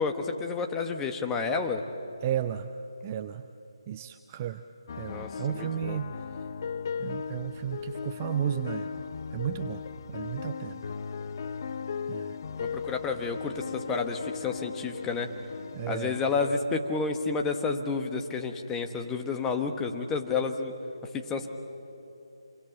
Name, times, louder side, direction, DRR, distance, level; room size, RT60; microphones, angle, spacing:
voice 1, 0.0-1.8 5.1-6.0 12.6-15.3 15.9-20.7 21.1-21.5, left 4 dB, 10° left, 4 dB, 1.3 m, -30 dB
voice 2, 2.2-2.7 3.0-3.5 3.9-4.6 5.0-6.1 7.0-8.9 9.3-9.8 10.1-10.8 12.1-12.4 15.7-16.2, right 10 dB, 20° right, 9 dB, 0.6 m, -33 dB
sound 1, 4.9-16.6, left 6 dB, 40° left, 0.7 m, -37 dB
27.5 x 22.5 x 8.0 m, 2.8 s
figure-of-eight pair, 155°, 3 cm